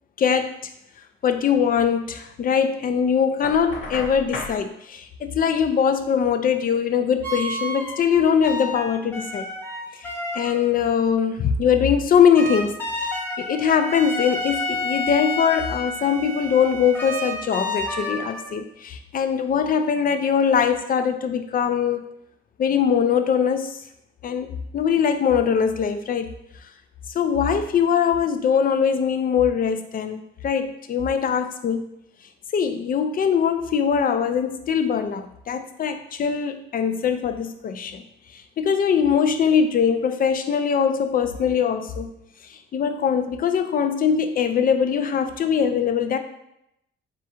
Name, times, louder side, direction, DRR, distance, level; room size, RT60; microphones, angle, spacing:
voice 1, 0.2-0.5 1.2-9.5 10.0-12.7 13.0-13.1 13.4-22.0 22.6-23.8 24.2-26.3 27.1-31.9 32.5-38.0 38.3-42.1 42.4-46.2, left 7 dB, 45° left, 7 dB, 0.4 m, -22 dB
Knock, 3.4-4.6, left 3 dB, 80° left, 1.0 m, -33 dB
sound 1, 7.2-10.7 12.4-18.6, left 2 dB, 10° left, 0.9 m, -30 dB
3.7 x 2.4 x 4.3 m, 0.80 s
cardioid pair, 90°, 20 cm